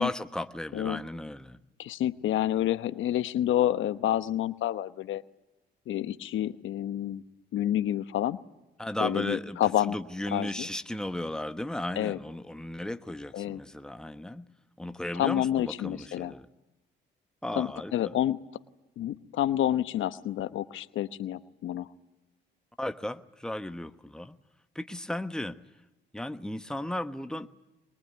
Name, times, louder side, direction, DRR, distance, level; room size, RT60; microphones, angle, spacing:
voice 1, 0.0-1.6 8.8-14.5 14.8-16.5 17.4-18.2 22.8-24.4 24.7-25.6 26.1-27.5, left 1 dB, 5° left, 9 dB, 1.2 m, -35 dB
voice 2, 1.8-5.2 5.9-7.2 7.5-8.4 9.0-9.9 10.3-10.7 12.0-12.2 13.3-13.6 15.1-16.3 17.6-18.4 19.0-21.9, left 12 dB, 80° left, 12 dB, 1.0 m, -28 dB
23.0 x 21.5 x 9.5 m, 0.98 s
cardioid pair, 90°, 20 cm